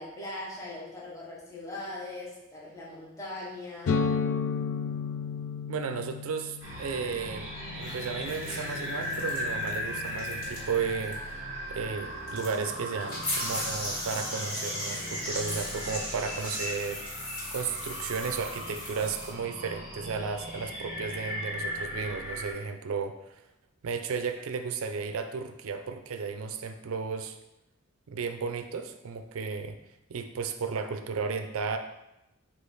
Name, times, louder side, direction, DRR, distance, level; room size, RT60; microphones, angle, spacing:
voice 1, 0.0-4.0, left 2 dB, 15° left, -6 dB, 0.9 m, -40 dB
sound 1, 3.9-11.5, left 5 dB, 80° left, 0.4 m, -34 dB
voice 2, 5.7-7.5 7.8-11.4 11.7-17.0 17.5-23.1 23.8-27.4 28.1-29.8 30.1-31.8, right 5 dB, 75° right, 7 dB, 0.4 m, -34 dB
sound 2, 6.6-22.5, equal, 15° right, 1.3 m, -38 dB
sound 3, 7.8-10.8 11.0-11.1 12.3-19.3, left 1 dB, 40° left, 1.6 m, -37 dB
5.1 x 2.4 x 3.9 m, 0.90 s
head